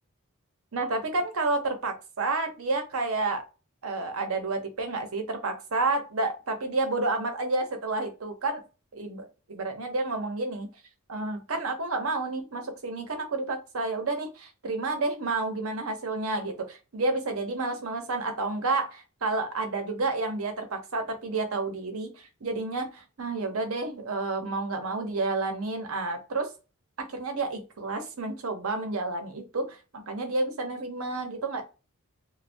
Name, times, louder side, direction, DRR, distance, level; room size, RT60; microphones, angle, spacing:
voice 1, 0.7-3.4 3.8-8.6 8.9-10.7 11.1-26.5 27.0-31.6, right 3 dB, 70° right, 5 dB, 0.8 m, -30 dB
2.6 x 2.2 x 3.3 m, 0.30 s
head